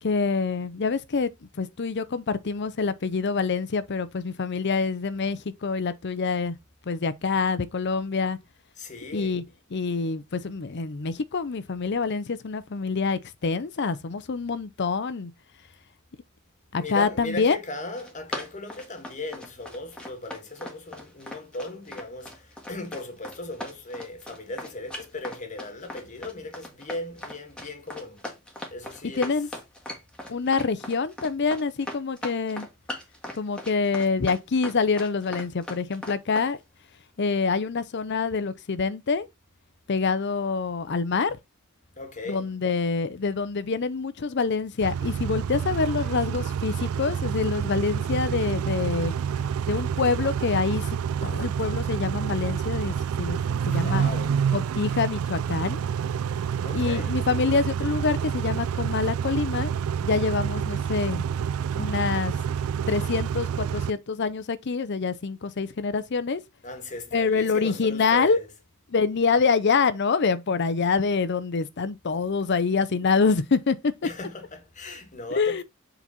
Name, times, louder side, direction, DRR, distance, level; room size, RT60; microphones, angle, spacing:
voice 1, 0.0-1.3 1.6-6.6 6.9-8.4 9.1-9.4 9.7-15.3 16.7-17.6 29.2-29.5 30.3-32.7 33.4-36.6 37.2-39.3 39.9-41.4 42.3-49.1 49.7-54.1 54.5-55.8 56.7-59.7 60.0-61.3 61.8-62.3 62.9-66.4 67.1-68.4 68.9-73.9 75.3-75.6, left 4 dB, 55° left, 0.6 m, -26 dB
voice 2, 8.8-9.4 16.8-28.2 28.7-29.3 42.0-42.5 53.6-54.4 56.6-57.2 66.6-68.4 74.0-75.6, left 2 dB, 35° left, 1.5 m, -37 dB
Run, 18.0-36.5, left 1 dB, 5° left, 1.6 m, -39 dB
Car / Idling / Accelerating revving vroom, 44.8-63.9, right 7 dB, 90° right, 0.3 m, -28 dB
7.3 x 4.0 x 4.2 m
head